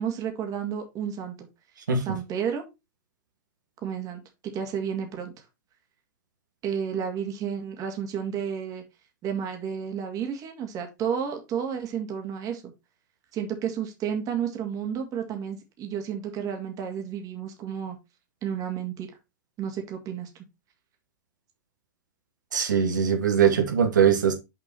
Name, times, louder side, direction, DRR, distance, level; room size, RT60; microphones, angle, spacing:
voice 1, 0.0-1.5 2.1-2.6 3.8-4.2 4.5-5.3 6.6-8.8 9.2-12.7 13.3-18.0 18.4-19.1 19.6-20.3, right 8 dB, 35° right, 2.2 m, -31 dB
voice 2, 22.5-24.3, right 7 dB, 85° right, 2.0 m, -21 dB
6.0 x 5.3 x 4.4 m
hypercardioid pair, 110°, 10 cm